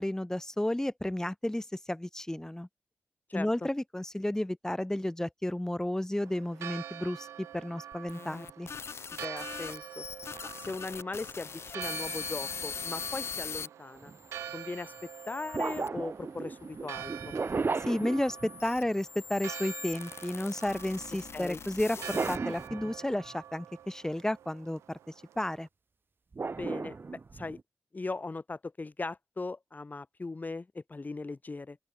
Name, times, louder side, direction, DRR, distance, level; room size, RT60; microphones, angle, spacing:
voice 1, 0.0-2.7 3.3-8.7 17.8-25.0 25.4-25.7, left 1 dB, 10° left, 4.9 m, -32 dB
Church bell, 6.2-25.7, right 10 dB, 90° right, 8.0 m, -46 dB
sound 1, 7.9-13.7 14.3-15.9 16.7-22.7, left 6 dB, 65° left, 3.1 m, -42 dB
voice 2, 9.2-10.0 10.4-14.1 14.5-14.9 15.3-17.3 21.3-21.6 26.5-27.6 27.9-31.8, left 3 dB, 40° left, 2.8 m, -39 dB
sound 2, 14.0-14.2 15.5-18.9 21.9-23.3 26.3-27.6, right 4 dB, 50° right, 5.7 m, -35 dB
open air
supercardioid pair, 45°, 5 cm